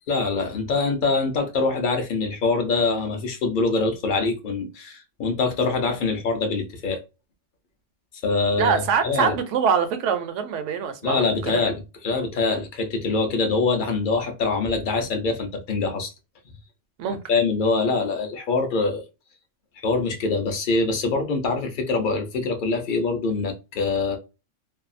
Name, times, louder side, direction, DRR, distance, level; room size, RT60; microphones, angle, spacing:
voice 1, 0.1-7.0 8.2-8.7 9.0-9.3 11.0-16.1 17.3-19.0 19.8-24.2, left 3 dB, 55° left, 0.6 m, -24 dB
voice 2, 8.5-11.6 17.0-17.2, right 7 dB, 75° right, 0.9 m, -24 dB
2.7 x 2.3 x 2.4 m
omnidirectional pair, 1.3 m